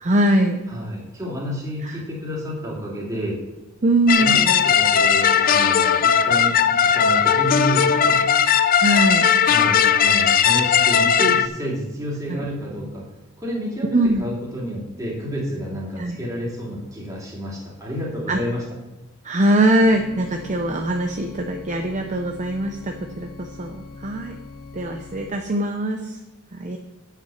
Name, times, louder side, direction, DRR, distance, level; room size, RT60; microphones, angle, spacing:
voice 1, 0.0-0.6 1.8-2.0 3.8-4.4 8.8-9.3 12.3-12.4 13.9-14.2 16.0-16.2 18.3-18.4 19.2-24.4 24.7-26.2 26.5-26.8, right 1 dB, 35° right, 4 dB, 0.6 m, -21 dB
voice 2, 0.7-3.4 4.2-8.2 9.4-13.0 13.4-18.6, equal, 15° right, -5 dB, 2.9 m, -30 dB
sound 1, 4.1-11.5, left 7 dB, 45° left, 0.4 m, -17 dB
sound 2, 19.8-25.3, left 4 dB, 70° left, 1.4 m, -41 dB
8.7 x 5.9 x 7.1 m, 1.1 s
head